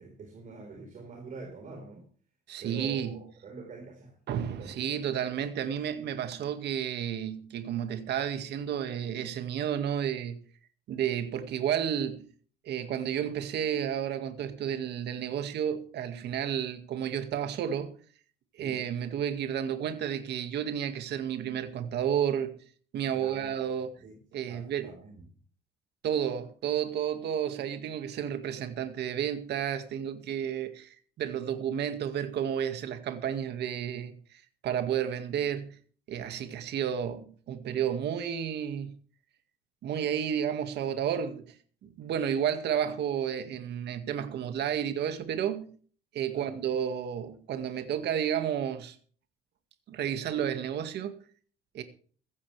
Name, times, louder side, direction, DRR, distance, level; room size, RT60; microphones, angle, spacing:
voice 1, 0.0-2.1 2.6-4.8 5.1-5.3 18.6-18.8 23.1-23.7 24.0-24.2 24.5-25.3 46.3-46.6, right 4 dB, 40° right, 4.6 m, -45 dB
voice 2, 2.5-3.2 4.3-10.4 10.9-12.2 12.6-18.0 18.5-22.6 22.9-23.9 24.3-24.9 26.0-35.8 36.1-39.0 39.8-41.5 41.8-45.7 46.1-49.0 49.9-51.2 51.7-51.8, right 9 dB, 60° right, 2.1 m, -31 dB
16.0 x 14.5 x 3.4 m
cardioid pair, 145°, 19 cm